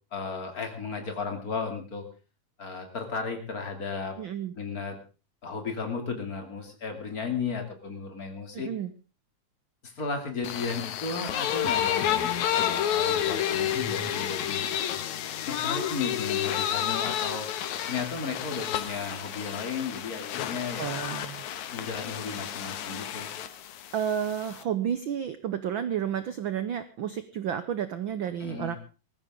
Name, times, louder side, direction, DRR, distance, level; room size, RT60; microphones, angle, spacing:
voice 1, 0.1-2.0 2.6-4.2 4.5-5.0 5.4-8.7 9.8-14.6 15.5-17.5 17.9-21.0 21.7-23.3 28.4-28.8, left 5 dB, 30° left, 4 dB, 3.2 m, -34 dB
voice 2, 4.2-4.5 8.5-8.9 20.8-21.4 23.9-28.8, right 9 dB, 75° right, 12 dB, 1.1 m, -31 dB
sound 1, 10.4-24.6, left 10 dB, 80° left, 2.5 m, -30 dB
19.5 x 15.0 x 3.8 m, 0.33 s
omnidirectional pair, 3.3 m